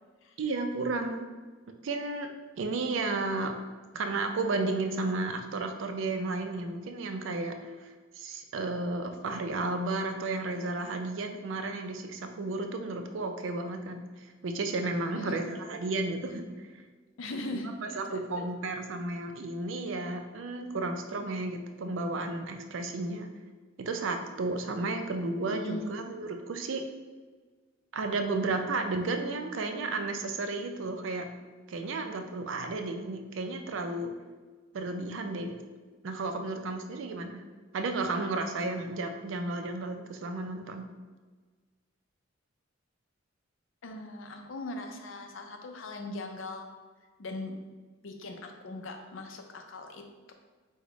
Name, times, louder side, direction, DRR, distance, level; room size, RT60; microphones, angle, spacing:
voice 1, 0.4-1.3 1.8-2.3 2.6-3.5 3.9-16.5 17.5-17.6 18.0-23.3 23.8-26.8 27.9-31.3 31.7-34.1 34.7-35.6 36.0-37.4 37.7-40.9, right 3 dB, 70° right, 5 dB, 0.4 m, -33 dB
voice 2, 15.1-15.5 17.2-18.2 25.5-25.9 43.8-46.7 47.2-47.5 48.0-50.3, left 2 dB, 75° left, 4 dB, 0.5 m, -40 dB
4.7 x 2.2 x 3.9 m, 1.4 s
head